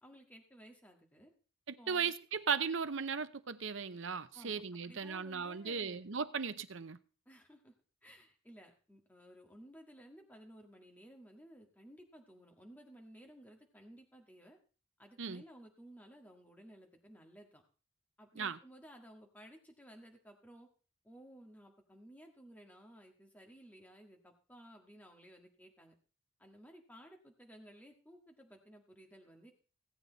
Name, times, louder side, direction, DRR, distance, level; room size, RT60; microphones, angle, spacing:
voice 1, 0.0-1.3 1.8-2.1 4.3-6.0 7.2-7.7 8.0-14.6 15.0-17.6 18.2-20.7 21.0-25.9 26.4-29.5, equal, 10° left, 1.7 m, -57 dB
voice 2, 1.7-7.0 15.2-15.4 18.4-18.6, right 6 dB, 70° right, 0.7 m, -37 dB
16.5 x 8.5 x 4.0 m
head